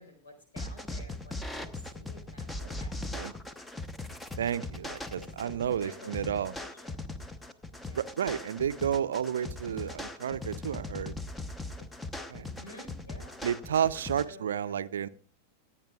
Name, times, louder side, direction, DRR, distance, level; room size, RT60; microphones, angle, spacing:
voice 1, 0.0-2.9 5.2-7.0 7.8-8.1 12.3-13.4 14.2-15.1, left 1 dB, 70° left, 5 dB, 4.2 m, -52 dB
sound 1, 0.6-14.2, left 2 dB, 10° left, 0.9 m, -40 dB
voice 2, 4.4-6.5 7.9-11.2 11.8-11.9 12.3-12.5 13.4-15.1, right 9 dB, 65° right, 15 dB, 0.5 m, -31 dB
25.5 x 8.8 x 2.3 m, 0.37 s
figure-of-eight pair, 90°, 0 cm